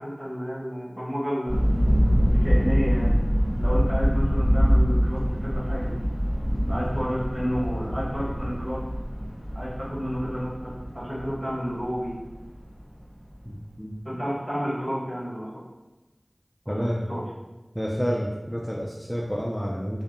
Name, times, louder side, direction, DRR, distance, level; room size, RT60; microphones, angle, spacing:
voice 1, 0.0-1.7 2.2-3.1 3.6-5.9 6.7-8.8 9.5-12.1 14.0-15.5 16.6-17.2, equal, 40° right, -10 dB, 1.4 m, -31 dB
sound 1, 1.5-13.0, equal, 75° right, 0.9 m, -24 dB
voice 2, 13.4-13.9 16.7-17.2 17.7-20.0, equal, 5° left, -5 dB, 0.3 m, -29 dB
2.6 x 2.1 x 2.6 m, 1.1 s
wide cardioid pair, 45°, 0 cm